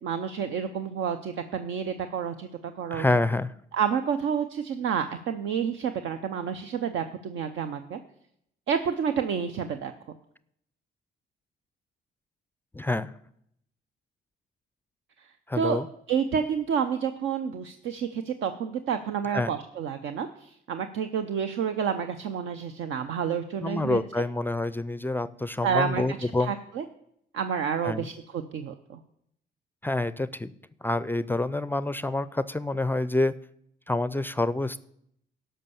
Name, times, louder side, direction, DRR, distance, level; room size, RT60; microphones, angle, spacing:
voice 1, 0.0-3.0 3.7-8.0 8.7-9.9 15.6-15.8 16.1-24.0 25.6-26.8 27.3-29.0, right 7 dB, 75° right, 8 dB, 0.7 m, -29 dB
voice 2, 2.9-3.5 12.7-13.1 15.5-15.9 19.3-19.5 23.6-26.5 27.8-28.1 29.8-30.5 30.8-33.4 33.9-34.8, left 2 dB, 10° left, 16 dB, 0.4 m, -27 dB
12.5 x 5.5 x 7.0 m, 0.72 s
cardioid pair, 90°, 20 cm